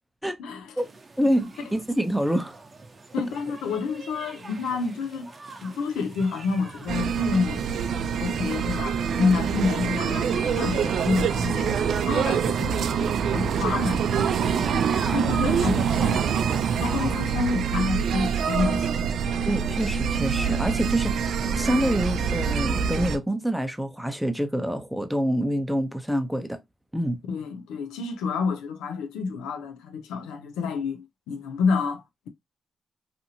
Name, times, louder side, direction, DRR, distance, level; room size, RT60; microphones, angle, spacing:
voice 1, 0.4-0.7 3.1-5.3 5.6-7.7 8.2-11.7 12.1-14.9 15.1-16.3 16.8-18.9 27.3-32.3, left 5 dB, 90° left, 0.5 m, -29 dB
sound 1, 0.8-16.6, right 3 dB, 40° right, 0.7 m, -45 dB
voice 2, 1.2-2.5 19.4-21.3 21.6-26.6 26.9-27.2, equal, 5° right, 0.6 m, -26 dB
sound 2, 6.9-23.2, right 7 dB, 75° right, 0.3 m, -25 dB
2.7 x 2.5 x 2.7 m
supercardioid pair, 55°, 0 cm